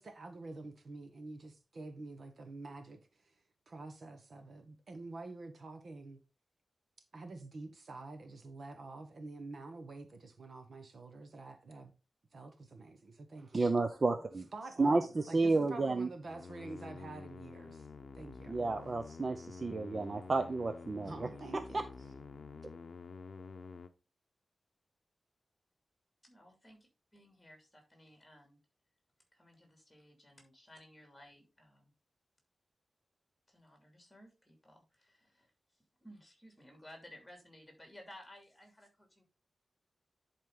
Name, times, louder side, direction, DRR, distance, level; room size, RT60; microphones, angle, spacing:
voice 1, 0.0-3.3 3.7-6.2 7.1-11.9 12.3-13.7 14.5-17.9 18.1-18.6 21.0-21.9, right 3 dB, 55° right, 1.1 m, -48 dB
voice 2, 13.5-14.5 14.8-16.1 18.5-21.3 21.7-21.8, right 3 dB, 35° right, 0.5 m, -31 dB
sound 1, 16.2-23.9, left 4 dB, 55° left, 0.7 m, -49 dB
voice 3, 26.2-26.8 27.1-28.6 29.3-31.9 33.5-35.5 36.0-39.2, left 1 dB, 10° left, 2.7 m, -57 dB
10.5 x 4.4 x 3.8 m
wide cardioid pair, 170°, 0 cm